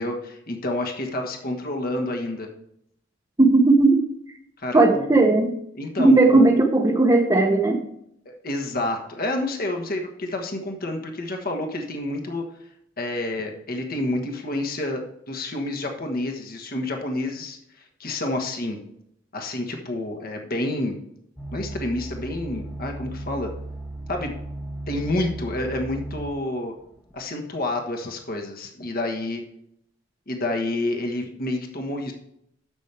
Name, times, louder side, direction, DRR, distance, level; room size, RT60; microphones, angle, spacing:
voice 1, 0.0-2.5 4.6-5.1 5.7-6.5 8.2-12.4 13.0-17.6 18.0-18.8 19.3-21.0 21.5-23.5 24.1-24.4 24.9-26.7 27.1-29.4 30.3-32.1, left 1 dB, 50° left, 3 dB, 1.4 m, -29 dB
voice 2, 3.4-4.0 4.7-5.6 6.0-7.8, right 2 dB, 20° right, -1 dB, 0.9 m, -16 dB
sound 1, 21.4-26.5 27.1-27.2, right 1 dB, 10° left, 1.0 m, -35 dB
11.0 x 7.2 x 3.4 m, 0.74 s
head